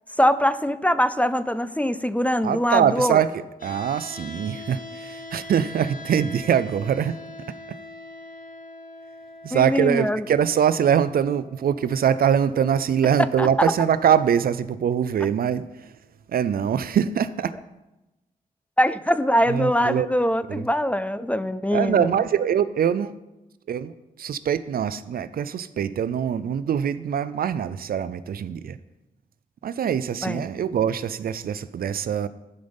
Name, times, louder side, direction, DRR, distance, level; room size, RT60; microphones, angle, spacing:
voice 1, 0.2-3.2 9.5-10.3 13.4-13.7 18.8-22.1 30.2-30.5, equal, 10° left, 15 dB, 0.4 m, -22 dB
voice 2, 2.4-7.1 9.4-15.9 16.3-17.5 19.5-20.1 20.5-20.7 21.7-23.2 23.7-23.9 24.2-28.8 29.6-32.3, right 8 dB, 75° right, 15 dB, 0.5 m, -23 dB
sound 1, 3.6-15.6, left 2 dB, 60° left, 1.8 m, -43 dB
11.5 x 5.3 x 5.3 m, 0.99 s
cardioid pair, 75°, 16 cm